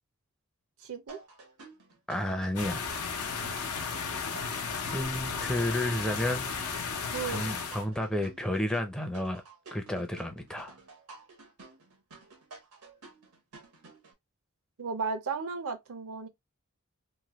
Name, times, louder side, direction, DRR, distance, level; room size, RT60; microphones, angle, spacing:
voice 1, 0.8-1.2 7.1-7.5 14.8-16.3, right 5 dB, 65° right, 0.6 m, -34 dB
sound 1, 1.1-14.1, right 3 dB, 90° right, 1.0 m, -52 dB
voice 2, 2.1-2.8 4.9-6.5 7.3-9.4 9.7-10.8, left 1 dB, 5° left, 0.4 m, -31 dB
sound 2, 2.6-7.8, left 5 dB, 85° left, 0.7 m, -34 dB
3.1 x 2.1 x 2.8 m
head